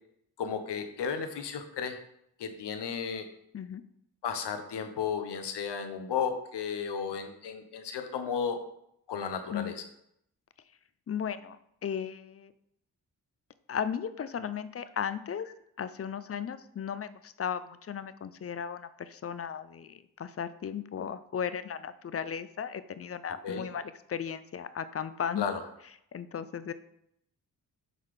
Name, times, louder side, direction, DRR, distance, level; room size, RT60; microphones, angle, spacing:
voice 1, 0.4-2.0 2.4-3.2 4.2-8.6 9.1-9.8 23.4-23.6 25.4-25.6, left 6 dB, 85° left, 7 dB, 0.9 m, -34 dB
voice 2, 11.1-12.5 13.7-15.5 15.8-23.8 24.1-25.5 26.1-26.7, left 8 dB, 35° left, 13 dB, 0.4 m, -36 dB
6.5 x 3.9 x 4.8 m, 0.74 s
cardioid pair, 80°, 40 cm